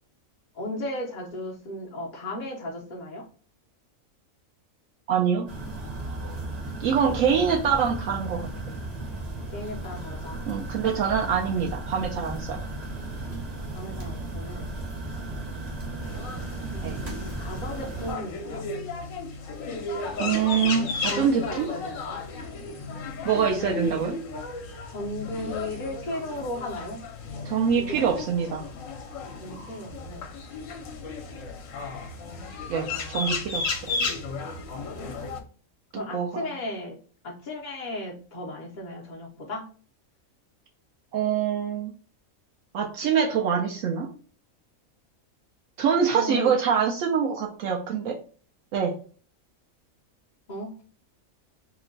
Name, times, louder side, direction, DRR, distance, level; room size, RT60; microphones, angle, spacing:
voice 1, 0.6-3.2 9.5-10.5 13.7-14.7 15.2-15.3 16.7-18.6 21.1-22.2 23.3-23.9 24.9-27.0 27.8-28.1 29.4-30.3 32.9-33.3 36.0-37.0 37.2-39.6 46.1-46.5 50.5-50.7, left 1 dB, 50° left, -3 dB, 0.6 m, -35 dB
voice 2, 5.1-5.5 6.8-8.8 10.5-12.6 16.8-17.0 20.2-21.7 23.2-24.2 27.4-28.6 32.7-33.8 35.9-36.5 41.1-41.9 42.7-44.1 45.8-48.2 48.7-48.9, right 7 dB, 70° right, 1 dB, 0.9 m, -25 dB
sound 1, 5.5-18.1, right 2 dB, 35° right, 0.8 m, -35 dB
sound 2, 16.0-35.4, left 3 dB, 70° left, 1.0 m, -34 dB
3.0 x 2.1 x 3.8 m, 0.42 s
omnidirectional pair, 1.5 m